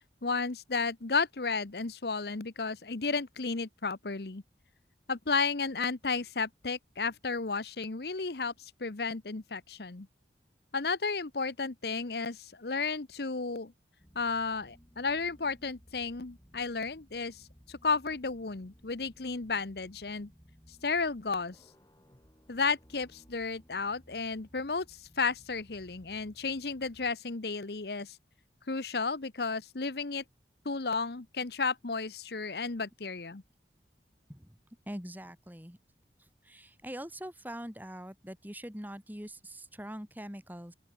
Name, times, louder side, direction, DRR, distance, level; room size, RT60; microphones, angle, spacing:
voice 1, 0.2-4.4 5.1-10.1 10.7-13.7 14.1-20.3 20.8-21.6 22.5-28.2 28.7-30.2 30.6-33.4, left 4 dB, 60° left, 1.0 m, -33 dB
sound 1, 14.0-27.1, equal, 20° left, 7.6 m, -60 dB
voice 2, 34.9-35.8 36.4-40.7, equal, 10° right, 5.7 m, -43 dB
open air
head